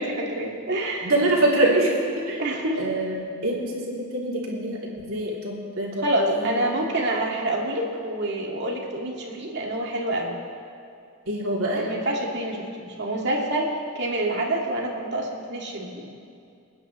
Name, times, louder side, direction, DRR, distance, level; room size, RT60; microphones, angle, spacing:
voice 1, 0.0-1.1 2.4-2.8 6.0-10.4 11.7-16.1, right 1 dB, 55° right, -1 dB, 2.1 m, -27 dB
voice 2, 1.0-2.4 2.8-6.7 11.3-11.9, right 1 dB, 85° right, -4 dB, 3.0 m, -25 dB
28.5 x 9.6 x 3.2 m, 2.4 s
head